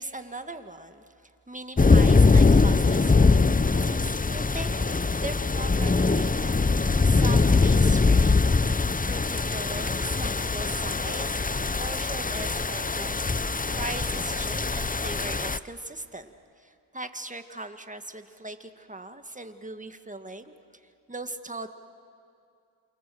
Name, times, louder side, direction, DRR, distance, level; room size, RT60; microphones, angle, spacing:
voice 1, 0.0-8.5 8.8-13.2 13.7-20.8 21.1-21.7, right 2 dB, 15° right, 8 dB, 1.9 m, -39 dB
sound 1, 1.8-15.6, left 4 dB, 20° left, 0.6 m, -22 dB
28.0 x 24.0 x 7.9 m, 2.4 s
cardioid pair, 40°, 48 cm